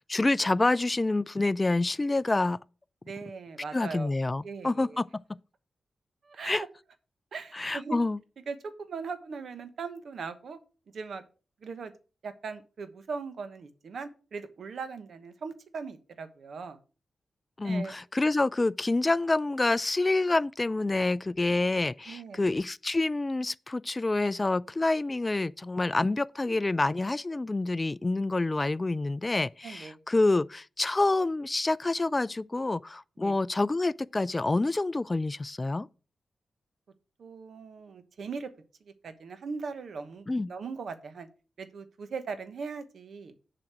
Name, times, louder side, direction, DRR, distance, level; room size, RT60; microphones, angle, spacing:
voice 1, 0.1-2.6 3.7-5.1 6.4-6.6 7.5-8.2 17.6-35.9 40.3-40.5, left 2 dB, 30° left, 0.3 m, -27 dB
voice 2, 3.0-4.2 4.4-5.0 6.2-6.7 7.3-8.0 8.5-10.6 10.9-11.2 11.6-11.9 12.2-16.8 17.6-18.0 22.1-22.5 29.6-30.0 33.2-33.4 37.2-38.5 38.8-41.3 41.6-43.3, right 5 dB, 75° right, 1.1 m, -39 dB
7.4 x 5.0 x 6.0 m
cardioid pair, 60°, 0 cm